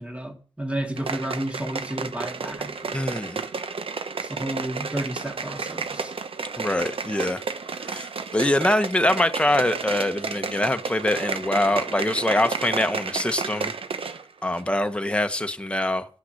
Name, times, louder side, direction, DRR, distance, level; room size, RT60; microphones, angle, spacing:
voice 1, 0.0-3.0 4.2-6.2, right 1 dB, 15° right, 2.6 m, -32 dB
sound 1, 1.0-14.2 14.5-14.6, right 5 dB, 80° right, 1.0 m, -32 dB
voice 2, 2.9-3.4 6.6-7.4 7.9-8.1 8.3-13.7 14.4-16.1, left 1 dB, 10° left, 1.2 m, -24 dB
11.5 x 5.9 x 7.8 m
wide cardioid pair, 65°, 9 cm